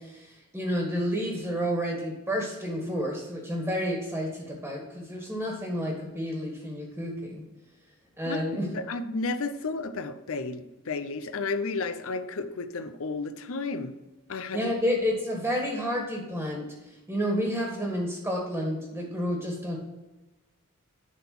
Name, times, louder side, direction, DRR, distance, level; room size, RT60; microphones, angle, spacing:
voice 1, 0.0-7.4 8.2-8.7 14.5-16.7 17.1-19.8, equal, 10° right, 0 dB, 1.7 m, -30 dB
voice 2, 8.6-14.0 14.3-14.7, left 3 dB, 70° left, 10 dB, 0.6 m, -32 dB
11.0 x 3.9 x 6.0 m, 1.1 s
head